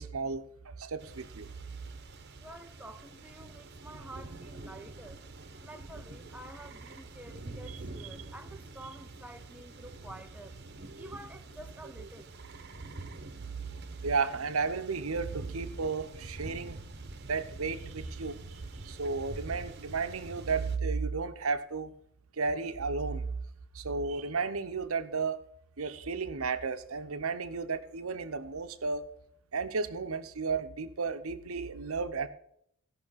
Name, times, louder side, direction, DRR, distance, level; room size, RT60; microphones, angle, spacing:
voice 1, 0.0-1.5 11.0-11.1 13.5-16.8 17.3-21.9 22.4-23.3 23.7-25.4 25.8-29.0 29.5-32.3, right 4 dB, 75° right, 0.9 m, -33 dB
sound 1, 1.0-20.8, right 2 dB, 50° right, 1.0 m, -46 dB
voice 2, 2.4-5.2 5.6-12.3, right 1 dB, 5° right, 0.5 m, -49 dB
16.0 x 5.8 x 5.7 m
head